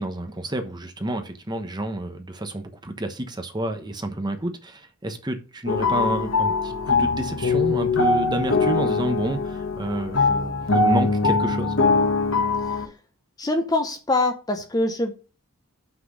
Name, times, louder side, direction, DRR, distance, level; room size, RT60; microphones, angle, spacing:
voice 1, 0.0-11.7, right 1 dB, 20° right, 1.0 m, -29 dB
sound 1, 5.7-12.9, left 3 dB, 60° left, 1.1 m, -22 dB
voice 2, 13.4-15.1, left 2 dB, 15° left, 0.8 m, -24 dB
6.0 x 6.0 x 6.4 m
head